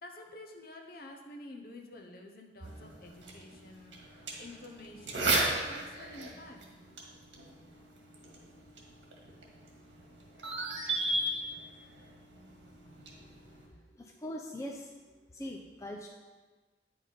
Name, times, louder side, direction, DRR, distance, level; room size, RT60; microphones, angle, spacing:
voice 1, 0.0-6.6, left 2 dB, 50° left, 3 dB, 1.0 m, -49 dB
sound 1, 2.6-13.7, right 2 dB, 80° right, 1.8 m, -37 dB
voice 2, 12.9-13.3 13.7-14.9 15.3-16.1, equal, 15° left, 0 dB, 0.6 m, -42 dB
9.2 x 5.7 x 5.2 m, 1.3 s
head